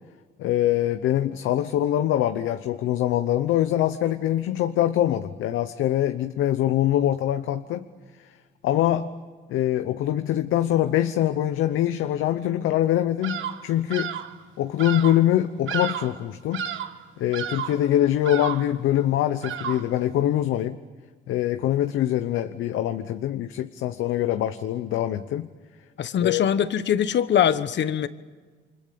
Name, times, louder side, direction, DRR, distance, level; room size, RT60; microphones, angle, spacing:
voice 1, 0.4-7.9 8.6-9.1 9.5-14.1 14.6-16.6 17.2-20.8 21.3-25.5 26.2-26.4, left 12 dB, 90° left, 9 dB, 1.0 m, -24 dB
Bird vocalization bird call bird song, 13.2-13.6 13.9-14.3 14.8-15.2 15.7-16.2 16.5-17.0 17.3-17.8 18.2-18.8 19.4-20.0, right 8 dB, 80° right, 1.5 m, -32 dB
voice 2, 26.0-28.1, left 9 dB, 65° left, 13 dB, 1.2 m, -23 dB
29.0 x 25.0 x 7.0 m, 1.5 s
cardioid pair, 90°, 20 cm